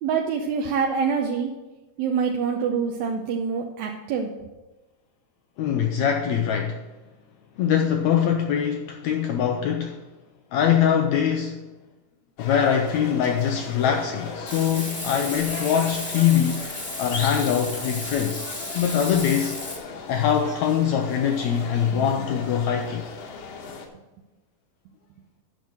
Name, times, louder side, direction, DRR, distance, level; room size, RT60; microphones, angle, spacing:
voice 1, 0.0-1.5 2.0-4.3 21.9-22.1, right 6 dB, 75° right, 1.7 m, -25 dB
voice 2, 5.6-6.8 7.6-10.0 10.5-11.7 12.4-18.5 18.7-19.6 20.1-23.1, left 8 dB, 90° left, 1.6 m, -23 dB
sound 1, 12.4-23.9, left 4 dB, 65° left, 1.8 m, -37 dB
Frying (food), 14.5-19.8, left 1 dB, 25° left, 1.1 m, -34 dB
9.1 x 6.4 x 6.2 m
omnidirectional pair, 3.9 m